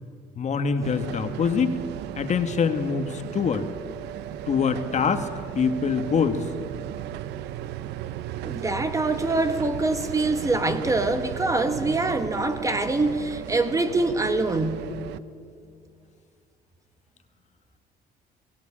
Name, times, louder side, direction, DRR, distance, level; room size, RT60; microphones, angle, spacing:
voice 1, 0.4-1.8 2.2-3.7 4.5-5.3 5.5-6.4, left 6 dB, 45° left, 1.7 m, -24 dB
sound 1, 0.8-15.2, right 12 dB, 85° right, 0.8 m, -36 dB
voice 2, 8.4-14.9, right 2 dB, 20° right, 1.5 m, -24 dB
22.0 x 17.0 x 8.8 m
cardioid pair, 110°, 17 cm